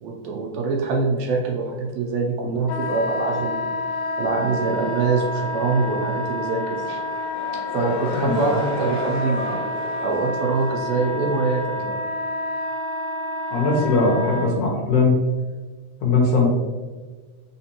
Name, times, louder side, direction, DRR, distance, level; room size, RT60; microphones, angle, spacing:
voice 1, 0.0-3.8 4.2-7.0 7.5-9.6 10.0-12.0, right 3 dB, 75° right, 0 dB, 1.7 m, -24 dB
Wind instrument woodwind instrument, 2.7-14.5, left 1 dB, 90° left, 2.2 m, -29 dB
sound 1, 6.7-11.2, equal, 45° left, 1.2 m, -33 dB
voice 2, 13.5-15.2 16.0-16.5, left 3 dB, 65° left, -3 dB, 2.0 m, -19 dB
4.3 x 3.9 x 2.8 m, 1.4 s
omnidirectional pair, 3.3 m